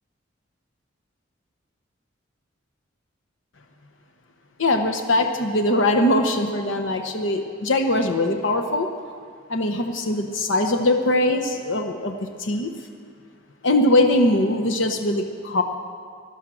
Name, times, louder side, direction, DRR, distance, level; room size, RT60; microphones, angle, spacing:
voice 1, 4.6-8.9 9.5-12.7 13.6-15.6, left 1 dB, 70° left, 5 dB, 0.9 m, -21 dB
16.5 x 12.0 x 6.3 m, 2.1 s
head